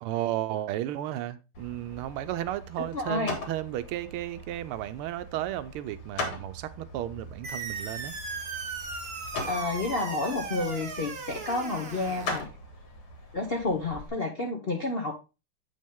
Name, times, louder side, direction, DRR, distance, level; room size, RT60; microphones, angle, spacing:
voice 1, 0.0-8.2, right 13 dB, 85° right, 1.5 m, -33 dB
sound 1, 1.5-14.1, left 2 dB, 85° left, 2.6 m, -41 dB
voice 2, 2.9-3.3 9.5-12.5 13.3-15.1, left 3 dB, 55° left, 0.6 m, -30 dB
sound 2, 7.4-12.4, right 4 dB, 40° right, 1.0 m, -37 dB
7.8 x 5.3 x 3.5 m
omnidirectional pair, 2.3 m